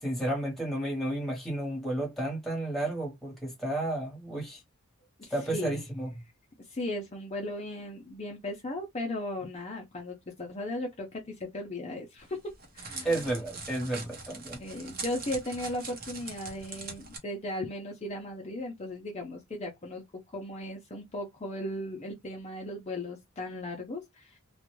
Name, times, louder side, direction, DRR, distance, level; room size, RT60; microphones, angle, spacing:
voice 1, 0.0-4.6 5.3-6.2 13.0-14.6, right 1 dB, ahead, 1.0 m, -32 dB
voice 2, 5.2-5.8 6.6-13.2 14.6-20.0 20.3-24.4, left 1 dB, 30° left, 0.5 m, -37 dB
Crackle, 12.2-17.2, right 4 dB, 45° right, 0.8 m, -42 dB
2.4 x 2.2 x 3.0 m
head